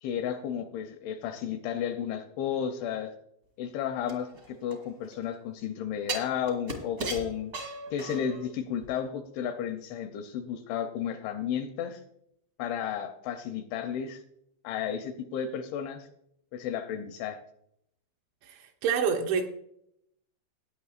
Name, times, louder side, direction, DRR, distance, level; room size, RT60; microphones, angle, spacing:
voice 1, 0.0-3.1 3.6-7.5 7.9-12.0 12.6-14.2 14.6-16.1 16.5-17.4, left 8 dB, 80° left, 2.7 m, -33 dB
sound 1, 4.1-5.2 6.1-8.4 8.8-8.9, right 2 dB, 60° right, 1.0 m, -37 dB
voice 2, 18.4-19.5, right 6 dB, 80° right, 2.7 m, -28 dB
16.5 x 9.6 x 2.4 m
omnidirectional pair, 5.8 m